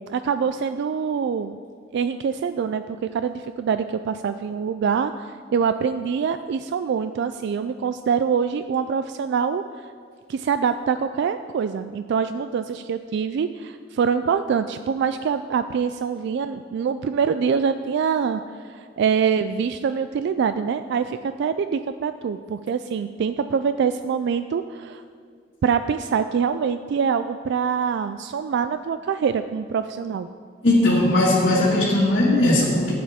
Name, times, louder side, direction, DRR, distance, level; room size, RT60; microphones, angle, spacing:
voice 1, 0.1-1.6 1.9-2.8 3.1-9.6 10.3-18.4 18.7-25.0 25.6-30.3, right 6 dB, 60° right, 10 dB, 0.3 m, -24 dB
voice 2, 30.6-32.9, left 1 dB, 55° left, -7 dB, 1.9 m, -18 dB
14.5 x 8.6 x 3.5 m, 2.1 s
head